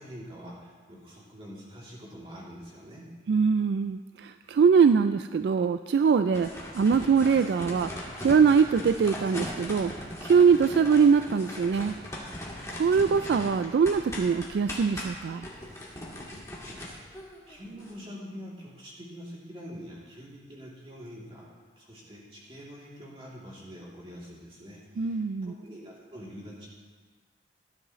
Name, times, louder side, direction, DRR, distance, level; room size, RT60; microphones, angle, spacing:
voice 1, 0.0-3.1 16.6-17.2 17.5-26.7, equal, 30° right, -5 dB, 2.9 m, -45 dB
voice 2, 3.3-6.5 6.7-7.9 8.2-9.9 10.2-12.0 12.7-15.5 25.0-25.5, right 6 dB, 65° right, 10 dB, 0.3 m, -22 dB
sound 1, 6.3-17.9, left 1 dB, 15° left, 1.9 m, -39 dB
17.0 x 10.5 x 3.1 m, 1.5 s
head